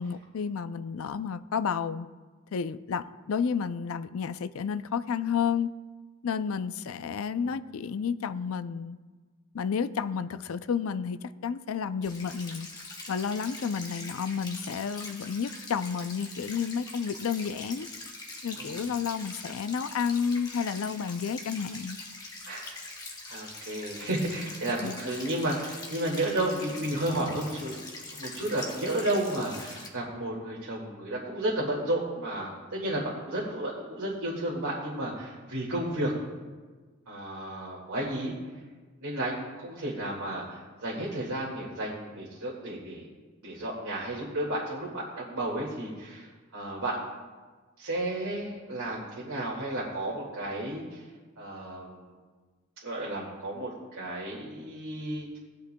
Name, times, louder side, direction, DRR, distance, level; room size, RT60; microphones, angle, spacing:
voice 1, 0.0-2.1 2.5-5.7 6.2-9.0 9.5-12.7 13.1-17.9 18.4-22.0 24.8-25.0, left 6 dB, 75° left, 13 dB, 0.4 m, -31 dB
sound 1, 12.0-29.9, left 2 dB, 20° left, 1.4 m, -43 dB
voice 2, 18.5-18.9 22.5-22.7 23.3-27.8 28.1-36.1 37.1-38.3 39.0-43.1 43.4-47.0 47.8-51.1 51.4-52.1 52.8-55.4, right 1 dB, 90° right, -4 dB, 2.0 m, -32 dB
17.5 x 10.5 x 2.2 m, 1.4 s
head